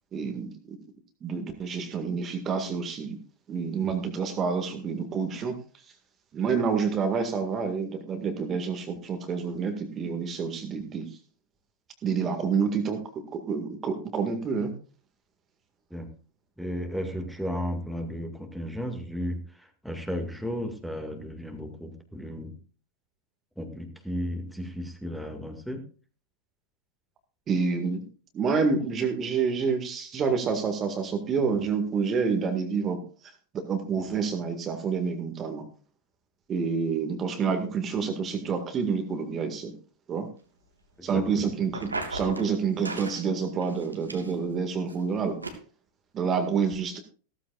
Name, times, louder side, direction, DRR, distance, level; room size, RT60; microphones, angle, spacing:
voice 1, 0.1-0.8 1.2-3.2 3.5-5.6 6.3-11.1 12.0-14.7 27.5-28.0 28.3-33.0 33.5-35.6 36.5-39.7 40.1-40.3 41.0-45.4 46.1-47.0, right 5 dB, 25° right, 6 dB, 1.9 m, -28 dB
voice 2, 16.6-22.6 23.6-25.8 41.0-41.5, equal, ahead, 4 dB, 2.1 m, -34 dB
sound 1, 41.7-42.5 42.9-43.2 43.6-44.5 44.9-45.0 45.4-45.5, right 2 dB, 80° right, 2.0 m, -36 dB
15.5 x 14.0 x 2.5 m, 0.39 s
figure-of-eight pair, 90°, 0 cm